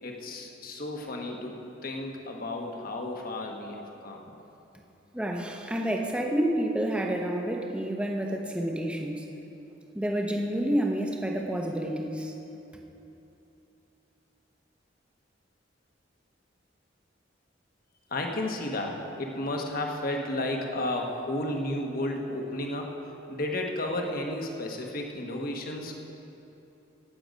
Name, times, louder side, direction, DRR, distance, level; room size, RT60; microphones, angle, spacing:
voice 1, 0.0-1.5 1.8-4.2 18.1-22.9 23.3-26.0, left 1 dB, 50° left, 2 dB, 1.2 m, -32 dB
voice 2, 5.1-9.3 9.9-12.3, right 1 dB, 5° right, 1 dB, 0.8 m, -29 dB
17.5 x 6.9 x 5.2 m, 2.9 s
head